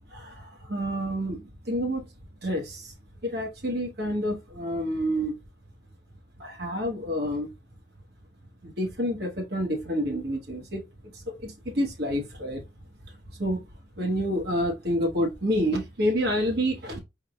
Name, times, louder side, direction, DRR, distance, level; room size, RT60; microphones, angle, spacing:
voice 1, 0.1-2.0 2.4-2.9 3.2-5.3 6.4-7.5 8.6-10.8 11.1-12.6 13.4-13.7 14.0-17.0, equal, 55° right, 1.4 m, -28 dB
4.5 x 3.6 x 2.2 m
head